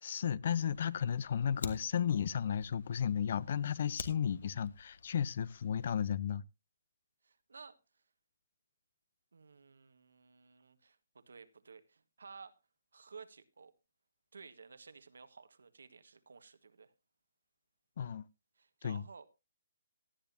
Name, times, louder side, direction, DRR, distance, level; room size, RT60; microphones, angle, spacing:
voice 1, 0.0-6.4 18.0-18.2 18.8-19.0, left 8 dB, 50° left, 0.6 m, -34 dB
Fire, 0.7-6.1, left 4 dB, 65° left, 1.6 m, -49 dB
voice 2, 7.2-8.0 9.3-12.6 12.9-13.7 14.3-16.9 18.5-19.3, right 5 dB, 90° right, 1.5 m, -55 dB
17.5 x 10.5 x 2.7 m
hypercardioid pair, 165°, 0 cm